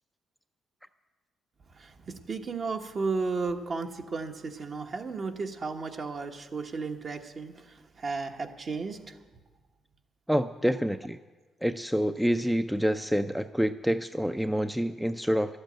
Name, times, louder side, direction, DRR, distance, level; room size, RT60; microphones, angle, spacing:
voice 1, 1.7-9.2, right 4 dB, 45° right, 5 dB, 1.1 m, -34 dB
voice 2, 10.3-11.2 11.6-15.6, equal, ahead, 9 dB, 0.4 m, -27 dB
12.0 x 8.0 x 8.9 m, 1.3 s
cardioid pair, 90°, 0 cm